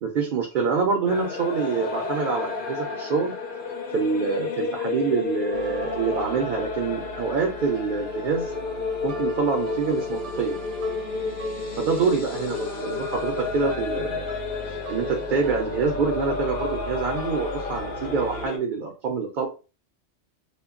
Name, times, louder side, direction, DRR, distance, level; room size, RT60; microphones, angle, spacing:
voice 1, 0.0-3.3 3.9-8.5 9.0-10.6 11.8-14.3 14.7-19.5, right 5 dB, 60° right, 2 dB, 0.6 m, -26 dB
sound 1, 1.1-18.6, left 4 dB, 60° left, 0.6 m, -31 dB
sound 2, 5.5-18.5, right 1 dB, 80° right, 0.9 m, -39 dB
2.2 x 2.0 x 3.6 m, 0.32 s
omnidirectional pair, 1.2 m